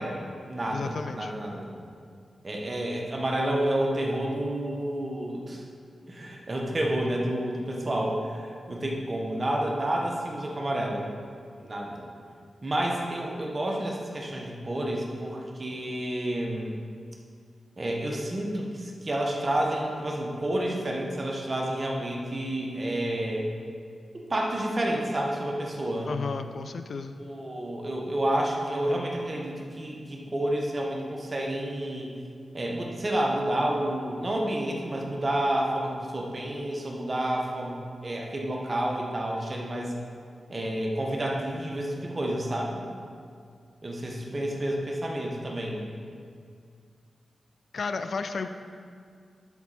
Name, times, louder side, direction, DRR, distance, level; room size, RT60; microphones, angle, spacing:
voice 1, 0.0-1.7 2.4-5.6 6.1-11.0 11.6-12.0 12.6-16.8 17.8-23.5 24.1-26.1 27.2-32.1 32.5-39.9 40.5-42.8 43.8-45.8, right 1 dB, 40° right, 0 dB, 1.4 m, -30 dB
voice 2, 0.7-1.3 26.1-27.2 47.7-48.5, left 4 dB, 70° left, 9 dB, 0.4 m, -33 dB
12.0 x 4.4 x 4.3 m, 2.2 s
cardioid pair, 50°, 0 cm